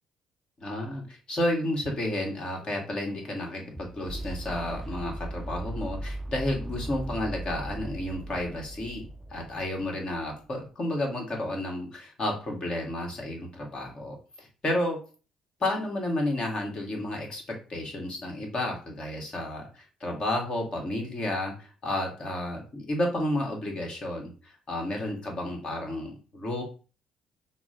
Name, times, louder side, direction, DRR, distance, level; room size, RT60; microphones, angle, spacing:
voice 1, 0.6-15.0 15.6-26.6, left 1 dB, 45° left, 0 dB, 1.8 m, -31 dB
sound 1, 1.9-10.0, right 1 dB, 5° left, 0.5 m, -39 dB
5.9 x 2.2 x 3.8 m, 0.37 s
hypercardioid pair, 45°, 2 cm